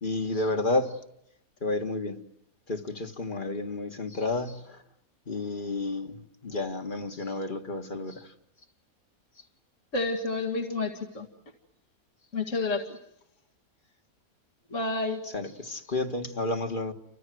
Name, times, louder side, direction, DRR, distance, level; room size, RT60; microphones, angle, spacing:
voice 1, 0.0-1.0 1.6-2.2 2.7-4.8 5.3-8.3 15.2-16.9, left 2 dB, 35° left, 2.0 m, -31 dB
voice 2, 9.9-11.3 12.3-12.8 14.7-15.2, left 3 dB, 55° left, 2.5 m, -29 dB
29.5 x 25.0 x 7.9 m
omnidirectional pair, 1.5 m